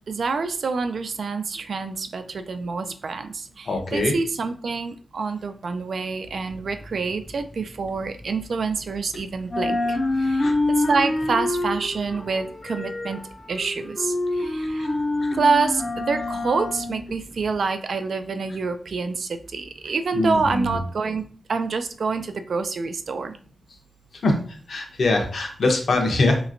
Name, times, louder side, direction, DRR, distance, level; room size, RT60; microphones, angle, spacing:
voice 1, 0.1-13.2 13.5-14.9 15.3-23.4, right 4 dB, 70° right, 8 dB, 0.3 m, -27 dB
voice 2, 3.7-4.1 10.4-10.5 20.1-20.8 24.2-24.4 24.7-26.5, left 2 dB, 70° left, 2 dB, 0.8 m, -22 dB
sound 1, 6.2-9.1 9.4-17.5, left 2 dB, 30° left, 0.4 m, -27 dB
3.2 x 2.9 x 2.5 m, 0.43 s
wide cardioid pair, 135°, 0 cm